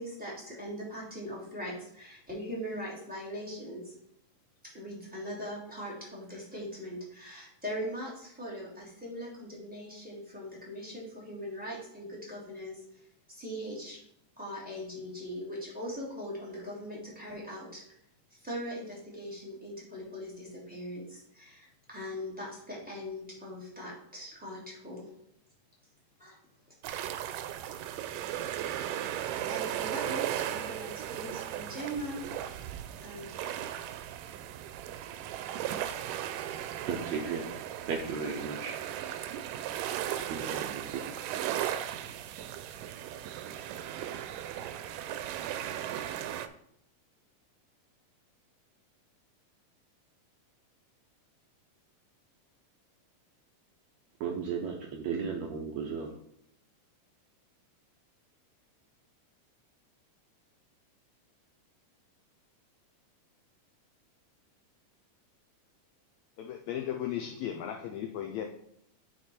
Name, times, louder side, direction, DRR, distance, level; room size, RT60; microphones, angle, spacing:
voice 1, 0.0-3.9 4.6-12.8 13.3-14.0 14.4-17.8 18.4-25.1 26.2-26.4 29.5-32.2 33.0-33.3, equal, 5° right, -5 dB, 2.7 m, -40 dB
sound 1, 26.8-46.5, right 11 dB, 90° right, 2.2 m, -36 dB
voice 2, 36.9-37.4 37.9-38.7 40.1-41.0 54.2-56.1, right 6 dB, 70° right, 1 dB, 1.8 m, -35 dB
voice 3, 66.4-68.4, left 10 dB, 80° left, 4 dB, 1.7 m, -36 dB
9.7 x 4.5 x 4.4 m, 0.73 s
omnidirectional pair, 3.7 m